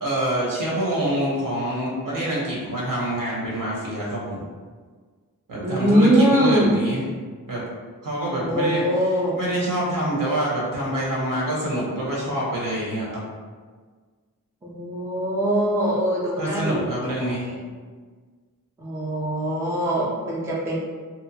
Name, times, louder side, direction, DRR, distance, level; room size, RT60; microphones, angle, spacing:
voice 1, 0.0-4.4 5.5-7.0 7.5-7.6 8.0-8.8 9.3-13.2 16.4-17.5, right 1 dB, 65° right, -5 dB, 0.9 m, -26 dB
voice 2, 5.6-6.7 8.3-9.4 14.6-16.9 17.3-17.6 18.8-20.8, right 1 dB, 10° right, -6 dB, 0.5 m, -22 dB
2.8 x 2.1 x 2.7 m, 1.5 s
wide cardioid pair, 105°, 34 cm